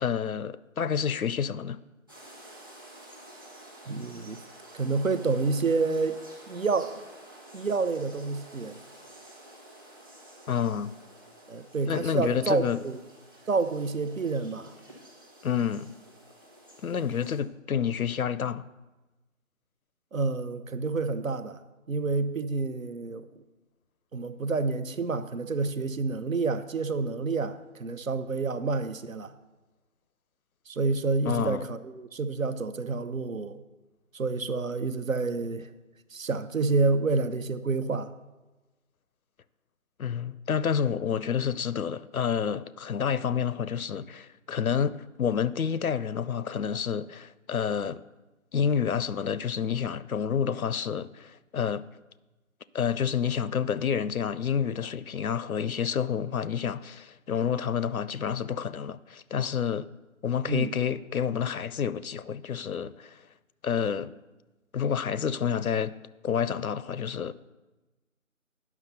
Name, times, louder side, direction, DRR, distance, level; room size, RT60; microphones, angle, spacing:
voice 1, 0.0-1.8 10.5-10.9 11.9-12.8 15.4-15.9 16.8-18.7 31.3-31.7 40.0-48.0 48.5-51.8 52.7-59.9 60.2-63.2 63.6-64.1 64.7-66.0 66.2-67.3, left 7 dB, 85° left, 0.6 m, -29 dB
sound 1, 2.1-17.4, right 1 dB, 15° right, 1.0 m, -51 dB
voice 2, 3.9-4.4 4.7-6.2 6.5-6.9 7.5-8.8 11.5-13.0 13.5-14.7 20.1-21.6 21.9-23.2 24.1-29.3 30.7-33.6 34.1-35.7 36.1-38.1 60.5-60.7, right 4 dB, 70° right, 0.8 m, -28 dB
9.6 x 6.1 x 6.7 m
figure-of-eight pair, 165°, 42 cm